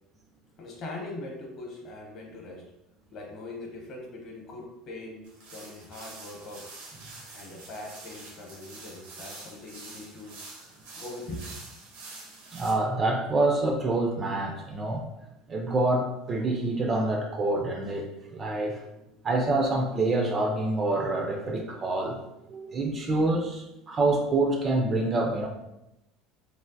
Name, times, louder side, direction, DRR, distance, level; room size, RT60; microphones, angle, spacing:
voice 1, 0.6-2.6 3.1-6.6 7.3-11.6, left 2 dB, 40° left, -1 dB, 0.8 m, -41 dB
sound 1, 5.2-12.7, right 3 dB, 90° right, 0.8 m, -46 dB
voice 2, 12.5-15.1 15.5-18.8 19.2-22.2 22.5-25.5, right 2 dB, 25° right, 2 dB, 0.3 m, -26 dB
3.2 x 2.4 x 2.6 m, 0.89 s
cardioid pair, 160°, 0 cm